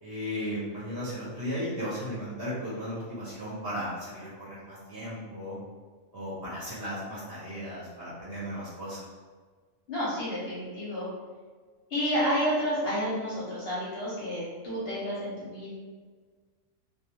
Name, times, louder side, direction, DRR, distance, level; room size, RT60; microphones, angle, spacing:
voice 1, 0.0-5.6 6.1-9.1, equal, 55° right, -8 dB, 0.8 m, -36 dB
voice 2, 9.9-11.1 11.9-15.7, equal, 55° left, -7 dB, 0.8 m, -30 dB
2.3 x 2.3 x 2.8 m, 1.5 s
omnidirectional pair, 1.5 m